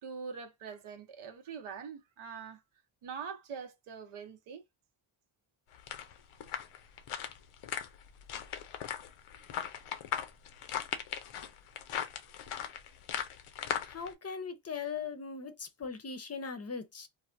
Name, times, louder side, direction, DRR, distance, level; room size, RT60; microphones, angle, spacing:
voice 1, 0.0-2.6 3.0-4.6, right 6 dB, 85° right, 0.8 m, -43 dB
Ice walk., 5.7-14.1, left 9 dB, 85° left, 0.6 m, -39 dB
voice 2, 13.8-17.1, left 5 dB, 30° left, 0.6 m, -39 dB
3.2 x 2.1 x 2.5 m
cardioid pair, 75°, 48 cm